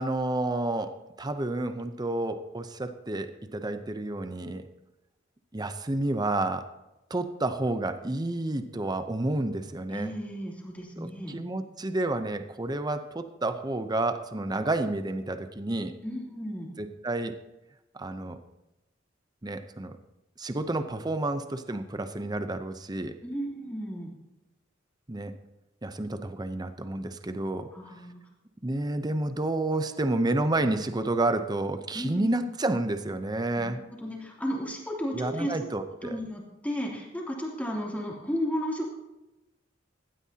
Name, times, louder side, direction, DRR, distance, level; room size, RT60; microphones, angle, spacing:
voice 1, 0.0-4.7 5.5-6.7 7.1-10.1 11.0-15.9 16.8-17.4 17.9-18.4 19.4-20.0 20.4-23.1 25.1-25.3 25.8-27.7 28.6-33.8 35.1-36.2, right 2 dB, 20° right, 9 dB, 0.7 m, -30 dB
voice 2, 9.9-11.3 16.0-16.7 23.2-24.1 27.7-28.2 31.9-32.4 33.6-35.5 36.0-38.9, equal, 10° left, -2 dB, 2.9 m, -34 dB
17.0 x 12.0 x 2.9 m, 0.96 s
head